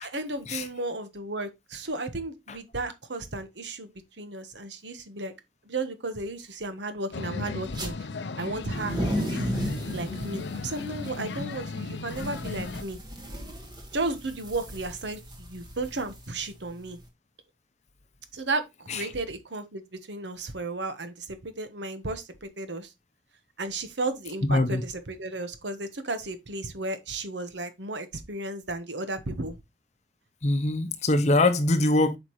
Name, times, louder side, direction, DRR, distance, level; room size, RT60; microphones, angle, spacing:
voice 1, 0.0-3.9 4.2-5.3 5.6-7.9 8.4-9.6 9.9-13.0 13.9-17.0 18.3-18.7 18.9-22.9 23.6-29.6, right 2 dB, 80° right, 1.2 m, -34 dB
sound 1, 7.1-12.8, left 4 dB, 70° left, 0.5 m, -36 dB
sound 2, 7.6-7.9 8.5-17.0, equal, 25° right, 1.7 m, -35 dB
voice 2, 24.5-24.8 30.4-32.2, left 2 dB, 40° left, 0.7 m, -23 dB
8.3 x 5.2 x 3.1 m
head